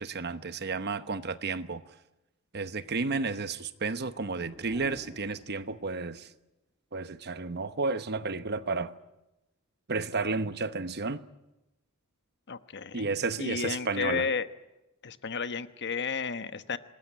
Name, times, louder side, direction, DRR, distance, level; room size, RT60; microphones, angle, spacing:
voice 1, 0.0-1.8 2.5-6.3 6.9-8.9 9.9-11.2 12.9-14.3, right 4 dB, 50° right, 1.0 m, -32 dB
sound 1, 3.7-6.4, equal, ahead, 2.5 m, -52 dB
voice 2, 12.5-13.1 13.4-14.5 15.0-16.8, left 5 dB, 50° left, 1.2 m, -32 dB
26.0 x 20.0 x 9.8 m
head